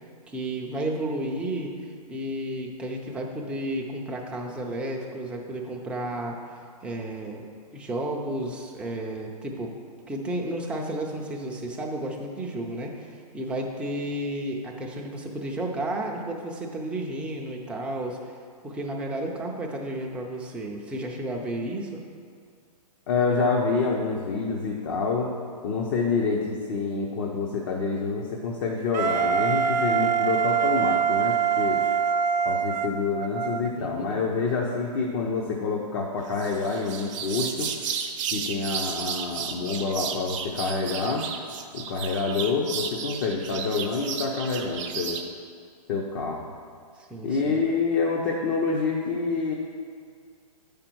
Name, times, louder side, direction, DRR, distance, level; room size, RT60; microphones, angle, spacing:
voice 1, 0.3-1.7 2.1-6.4 6.8-7.4 7.7-9.7 10.1-13.1 13.3-18.2 18.6-22.0 33.7-34.2 47.0-47.6, right 1 dB, 5° right, -1 dB, 0.5 m, -32 dB
voice 2, 23.1-25.3 25.6-31.8 32.4-37.7 38.3-41.3 41.7-45.2 45.9-46.5 47.2-49.5, left 4 dB, 40° left, -1 dB, 0.8 m, -27 dB
Wind instrument woodwind instrument, 28.9-33.7, right 7 dB, 90° right, 0.5 m, -24 dB
sound 1, 36.3-45.3, right 7 dB, 50° right, 0.7 m, -33 dB
8.2 x 5.2 x 4.5 m, 2.1 s
hypercardioid pair, 145°, 21 cm